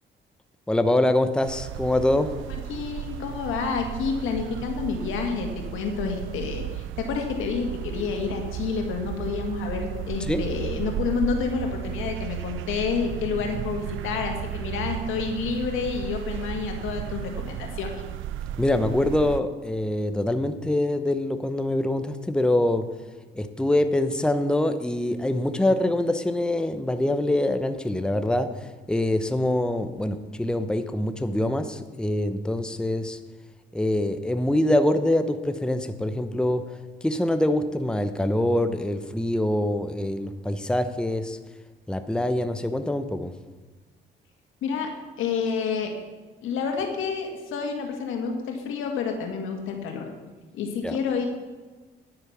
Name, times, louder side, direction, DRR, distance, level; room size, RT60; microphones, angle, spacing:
voice 1, 0.7-2.3 10.2-10.4 18.6-22.9 23.3-33.2 33.7-36.6 37.0-41.4 41.9-43.3 50.8-51.0, left 1 dB, 5° left, 9 dB, 0.8 m, -24 dB
sound 1, 1.4-19.4, right 12 dB, 80° right, 0.4 m, -34 dB
voice 2, 2.7-17.9 44.6-46.0 46.4-50.1 50.5-51.3, left 5 dB, 85° left, 3 dB, 2.1 m, -29 dB
9.9 x 9.0 x 5.9 m, 1.3 s
cardioid pair, 90°, 20 cm